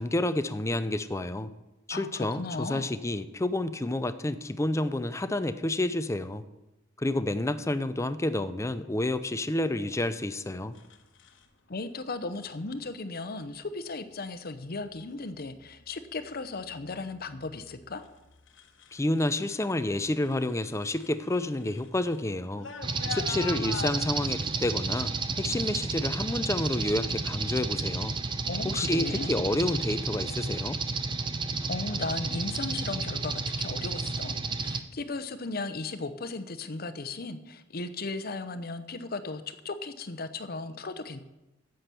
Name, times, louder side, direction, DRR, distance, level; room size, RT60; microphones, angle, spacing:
voice 1, 0.0-1.5 1.9-6.4 7.0-10.8 18.9-22.7 23.1-25.1 25.4-28.1 28.6-30.8, left 1 dB, 15° left, 11 dB, 0.5 m, -29 dB
voice 2, 1.9-3.0 11.7-18.0 28.4-29.3 31.7-41.2, left 3 dB, 50° left, 11 dB, 0.8 m, -36 dB
sound 1, 10.8-11.4 12.6-12.9 13.5-13.9 14.5-15.0 15.4-19.7 19.9-24.0, left 5 dB, 70° left, 1.2 m, -44 dB
sound 2, 22.8-34.8, right 4 dB, 25° right, 0.6 m, -31 dB
10.0 x 7.8 x 6.8 m, 0.99 s
head